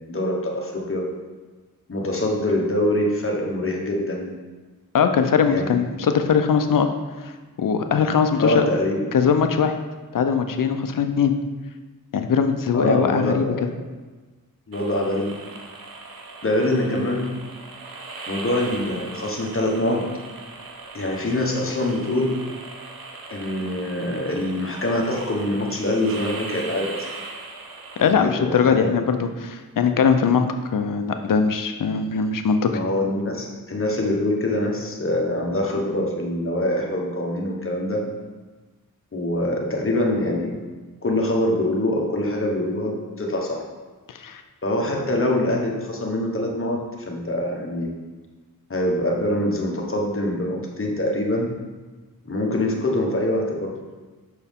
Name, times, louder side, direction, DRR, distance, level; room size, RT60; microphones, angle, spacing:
voice 1, 0.1-1.0 1.9-4.2 5.5-5.8 8.4-9.0 12.7-13.7 14.7-15.4 16.4-17.3 18.3-20.0 20.9-22.3 23.3-27.1 28.0-28.9 32.7-38.0 39.1-40.6 41.0-43.6 44.6-46.8 47.1-47.9 48.7-51.5 52.2-53.8, left 1 dB, 35° left, 0 dB, 1.1 m, -24 dB
voice 2, 4.9-6.9 7.2-7.3 7.6-8.7 9.1-9.8 10.1-11.3 12.1-13.5 28.0-30.5 30.7-32.7 44.1-44.4, left 6 dB, 65° left, 7 dB, 0.6 m, -20 dB
sound 1, 14.7-28.1, right 3 dB, 75° right, 0.8 m, -39 dB
6.4 x 4.5 x 3.6 m, 1.3 s
wide cardioid pair, 90°, 36 cm